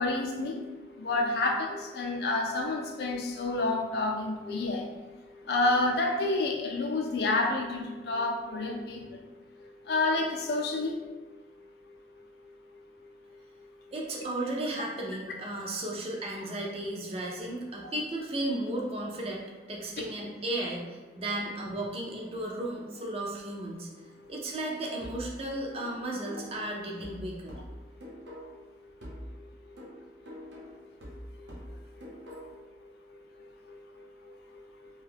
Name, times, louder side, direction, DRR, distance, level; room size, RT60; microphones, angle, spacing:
voice 1, 0.0-5.1 5.5-9.2 9.6-11.1 17.8-17.9 20.0-20.1 31.1-32.9 33.4-34.9, left 2 dB, 65° left, 1 dB, 0.4 m, -30 dB
voice 2, 13.9-20.8 21.2-23.9 24.3-27.5, right 1 dB, 35° right, -1 dB, 0.4 m, -34 dB
sound 1, 25.0-28.7 29.0-32.7, equal, 85° right, 0.8 m, -45 dB
2.6 x 2.2 x 3.4 m, 1.2 s
head